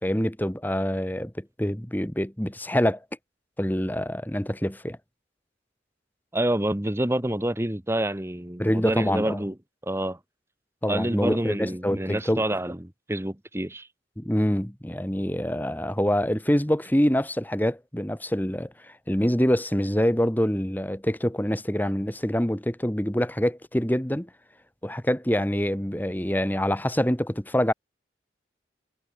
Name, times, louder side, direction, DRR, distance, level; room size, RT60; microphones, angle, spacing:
voice 1, 0.0-3.0 3.6-5.0 8.6-9.4 10.8-12.4 14.2-24.3 24.8-27.7, equal, 10° left, 1.8 m, -25 dB
voice 2, 6.3-9.5 9.8-10.2 10.9-13.9, right 1 dB, 15° right, 1.2 m, -27 dB
head